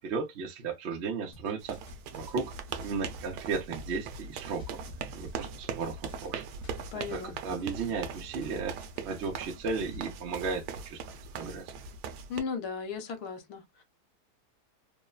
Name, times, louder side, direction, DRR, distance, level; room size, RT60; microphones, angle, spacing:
voice 1, 0.0-1.8 2.1-2.5 2.8-4.8 5.1-6.4 7.1-11.0 11.3-11.7, right 4 dB, 55° right, 0.8 m, -35 dB
sound 1, 1.3-7.2 7.6-10.0, right 1 dB, 35° left, 0.7 m, -54 dB
sound 2, 1.6-12.4, right 6 dB, 85° right, 1.2 m, -40 dB
voice 2, 6.9-7.4 12.3-13.8, left 5 dB, 70° left, 1.2 m, -36 dB
3.1 x 2.0 x 2.2 m
omnidirectional pair, 1.7 m